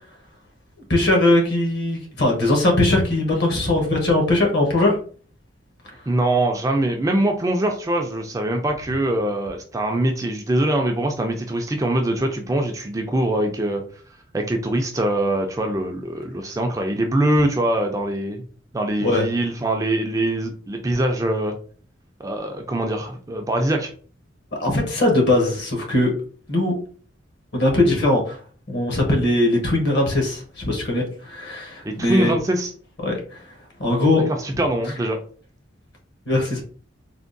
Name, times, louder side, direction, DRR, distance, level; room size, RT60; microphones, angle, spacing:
voice 1, 0.9-5.0 19.0-19.3 24.6-26.1 26.5-26.7 27.5-28.4 28.7-32.3 33.0-33.4 33.8-34.3 36.3-36.6, left 1 dB, 55° left, 1 dB, 0.9 m, -20 dB
voice 2, 6.1-13.8 14.3-18.4 18.7-21.5 22.2-23.9 31.9-32.7 34.3-35.2, right 1 dB, 15° right, 3 dB, 0.3 m, -23 dB
3.5 x 2.2 x 2.5 m, 0.42 s
head